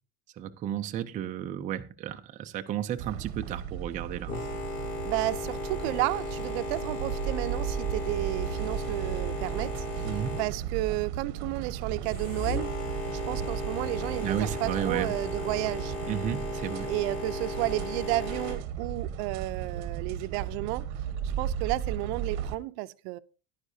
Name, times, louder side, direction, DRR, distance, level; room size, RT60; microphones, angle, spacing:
voice 1, 0.4-4.3 10.0-10.3 14.2-15.1 16.1-16.9, right 10 dB, 25° right, 0.4 m, -33 dB
sound 1, 3.0-22.6, right 9 dB, 55° right, 1.3 m, -35 dB
Boat Water vehicle, 4.3-18.5, left 2 dB, 45° left, 6.6 m, -36 dB
voice 2, 5.0-12.7 13.1-15.9 16.9-20.9 21.4-23.2, right 19 dB, 70° right, 0.6 m, -32 dB
14.5 x 11.0 x 2.7 m
cardioid pair, 175°, 33 cm